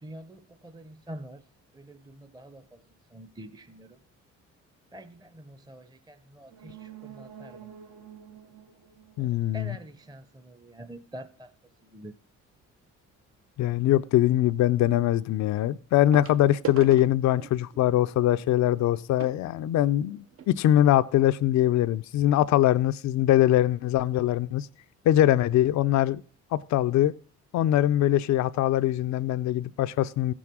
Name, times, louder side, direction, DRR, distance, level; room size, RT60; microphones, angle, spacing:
voice 1, 0.0-1.4 1.7-2.8 3.1-4.0 4.9-7.7 9.2-11.5 11.8-12.1, right 1 dB, 15° right, 0.7 m, -46 dB
sound 1, 6.4-10.1 10.5-10.6, right 9 dB, 75° right, 1.3 m, -49 dB
voice 2, 9.2-9.8 13.6-24.7 25.0-26.2 26.5-27.1 27.5-30.3, left 13 dB, 65° left, 0.5 m, -22 dB
sound 2, 12.5-12.8 14.5-14.6 16.1-20.5 21.3-21.4 21.6-21.8 22.3-22.4, right 10 dB, 50° right, 0.5 m, -42 dB
15.0 x 6.1 x 6.1 m
cardioid pair, 90°, 30 cm